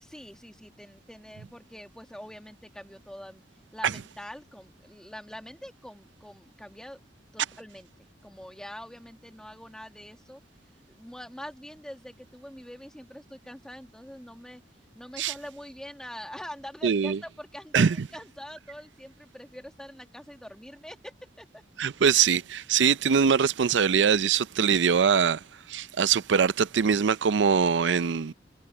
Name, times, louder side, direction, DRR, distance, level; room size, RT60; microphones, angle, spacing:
voice 1, 0.0-3.4 3.7-7.0 7.3-10.4 10.8-14.6 14.9-21.6, equal, 5° left, 1.5 m, -44 dB
voice 2, 16.8-17.2 17.7-18.0 21.8-25.4 25.7-28.3, right 6 dB, 85° right, 0.5 m, -23 dB
head